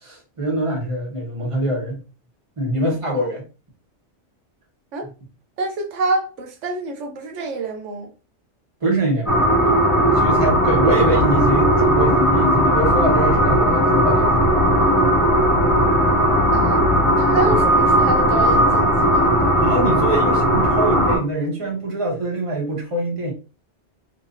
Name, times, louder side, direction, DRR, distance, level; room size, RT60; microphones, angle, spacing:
voice 1, 0.0-2.0 2.6-3.4 8.8-9.8 10.1-14.5 15.1-15.2 19.6-23.3, right 1 dB, 30° right, 1.2 m, -24 dB
voice 2, 5.6-8.1 16.5-19.5, right 3 dB, 85° right, 1.1 m, -27 dB
sound 1, 9.3-21.2, equal, 25° left, 1.5 m, -17 dB
3.3 x 3.1 x 2.6 m
omnidirectional pair, 1.2 m